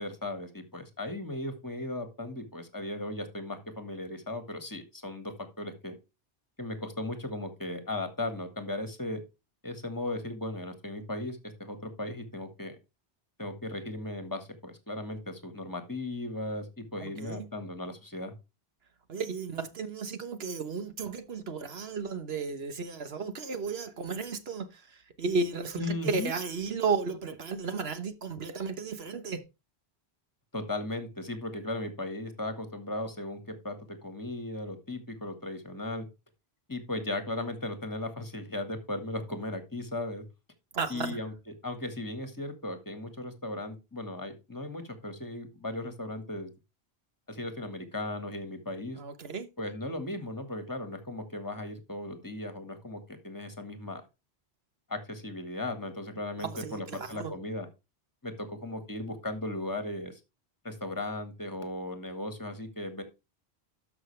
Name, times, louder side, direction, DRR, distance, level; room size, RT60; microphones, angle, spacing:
voice 1, 0.0-5.9 6.6-9.2 9.6-12.8 13.4-18.3 25.8-26.3 30.5-36.1 36.7-40.2 40.9-41.3 41.6-46.5 47.3-49.0 49.6-54.0 54.9-57.7 58.2-60.2 60.6-63.0, left 2 dB, 20° left, 1.7 m, -37 dB
voice 2, 17.0-17.5 19.1-29.4 40.7-41.2 49.0-49.5 56.4-57.3, right 4 dB, 65° right, 1.4 m, -34 dB
12.5 x 6.0 x 3.3 m
omnidirectional pair, 1.1 m